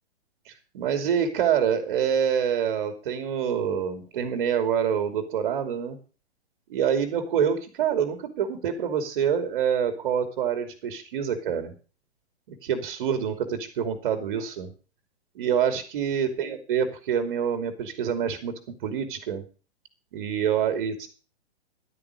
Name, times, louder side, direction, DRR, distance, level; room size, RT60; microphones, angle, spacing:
voice 1, 0.5-6.0 6.7-11.7 12.5-14.7 15.3-18.5 18.8-19.4 20.1-21.1, right 8 dB, 50° right, 8 dB, 2.9 m, -26 dB
12.0 x 8.9 x 6.4 m, 0.35 s
figure-of-eight pair, 125°, 33 cm